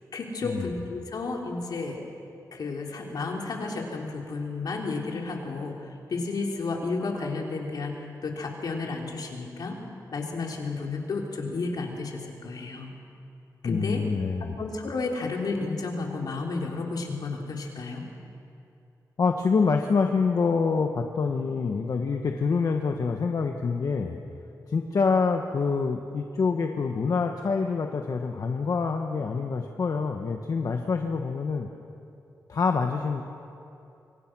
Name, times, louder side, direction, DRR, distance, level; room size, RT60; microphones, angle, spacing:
voice 1, 0.1-2.0 2.5-7.9 8.2-9.8 10.1-12.9 13.6-14.0 14.4-18.0, left 3 dB, 80° left, 0 dB, 3.7 m, -32 dB
voice 2, 13.6-14.6 19.2-24.2 24.7-31.7 32.5-33.2, left 4 dB, 60° left, 4 dB, 1.3 m, -26 dB
25.0 x 24.5 x 6.2 m, 2.7 s
wide cardioid pair, 110°, 7 cm